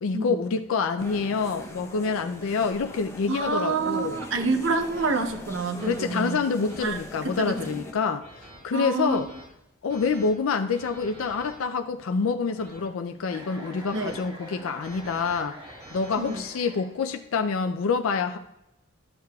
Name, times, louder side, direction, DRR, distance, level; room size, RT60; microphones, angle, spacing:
voice 1, 0.0-4.2 5.8-9.3 9.8-15.6 15.9-18.4, left 5 dB, 80° left, 7 dB, 0.4 m, -27 dB
sound 1, 1.0-7.9, left 1 dB, 10° left, 0.7 m, -41 dB
sound 2, 3.2-3.4 4.1-4.2 4.9-5.1 5.8-6.0 6.5-6.8 7.3-7.7 8.2-8.6 9.1-9.4 9.9-10.3 10.7-11.5 12.2-12.9 13.5-14.2 14.6-16.4, right 1 dB, 35° right, 3.2 m, -48 dB
voice 2, 3.3-6.4 6.8-7.0 7.2-7.6 8.7-9.2 13.9-14.2 16.2-16.4, right 3 dB, 65° right, 5 dB, 0.7 m, -27 dB
Chuckle chortle, 13.2-17.3, equal, 20° right, 1.2 m, -45 dB
12.0 x 6.7 x 2.3 m, 0.88 s
head